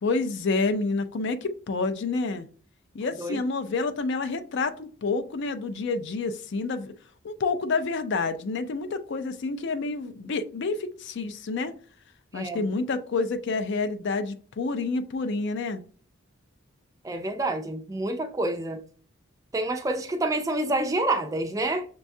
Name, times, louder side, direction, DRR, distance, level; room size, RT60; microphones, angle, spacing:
voice 1, 0.0-2.5 2.9-6.9 7.2-11.7 12.3-15.8, left 3 dB, 55° left, 0.4 m, -28 dB
voice 2, 12.3-12.7 17.0-18.8 19.5-21.9, right 2 dB, 15° right, 0.4 m, -28 dB
6.1 x 2.3 x 2.6 m
head